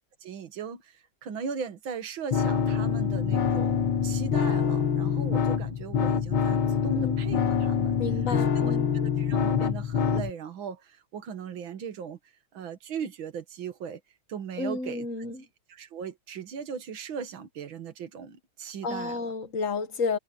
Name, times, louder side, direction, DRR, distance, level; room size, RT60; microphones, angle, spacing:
voice 1, 0.2-8.0 8.6-12.2 12.5-14.0 14.3-15.1 15.7-19.3, right 7 dB, 70° right, 2.3 m, -38 dB
sound 1, 2.3-10.3, left 7 dB, 85° left, 2.2 m, -25 dB
voice 2, 8.0-8.9 14.6-15.5 18.8-20.2, left 4 dB, 45° left, 1.5 m, -31 dB
omnidirectional pair, 2.2 m